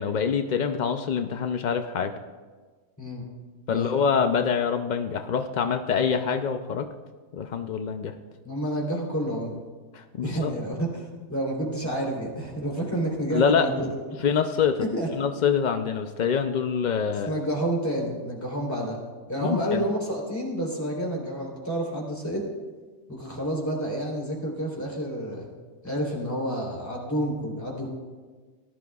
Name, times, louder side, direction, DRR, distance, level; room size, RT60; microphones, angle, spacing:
voice 1, 0.0-2.1 3.7-6.9 7.3-8.1 9.9-10.6 13.3-13.7 14.2-14.9 15.2-17.4 19.4-19.8, left 6 dB, 80° left, 7 dB, 0.4 m, -25 dB
voice 2, 8.4-9.6 10.2-14.2 14.8-15.1 17.3-19.0 19.3-22.5 23.1-25.5 25.8-27.9, right 1 dB, 10° left, -3 dB, 3.1 m, -29 dB
18.5 x 12.0 x 2.4 m, 1.4 s
omnidirectional pair, 1.5 m